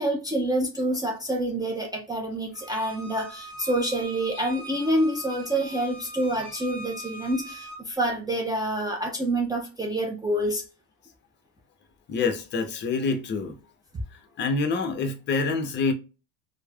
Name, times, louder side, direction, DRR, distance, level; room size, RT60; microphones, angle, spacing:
voice 1, 0.0-10.6, right 1 dB, 10° right, 0.3 m, -27 dB
Bowed string instrument, 2.5-7.8, right 2 dB, 5° left, 1.0 m, -41 dB
voice 2, 12.1-13.6 14.4-15.9, left 4 dB, 35° left, 0.6 m, -26 dB
3.1 x 2.0 x 2.2 m
cardioid pair, 130°, 34 cm